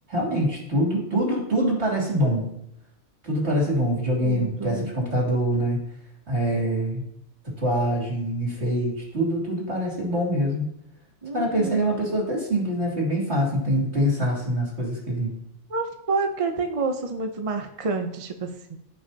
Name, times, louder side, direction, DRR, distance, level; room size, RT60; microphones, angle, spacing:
voice 1, 0.1-2.5 3.2-5.8 6.3-7.0 7.6-10.7 11.3-15.4, equal, 60° right, -3 dB, 3.2 m, -24 dB
voice 2, 4.2-4.9 11.2-11.8 15.7-18.8, right 4 dB, 35° right, 5 dB, 0.6 m, -28 dB
15.0 x 5.6 x 2.8 m, 0.81 s
omnidirectional pair, 1.3 m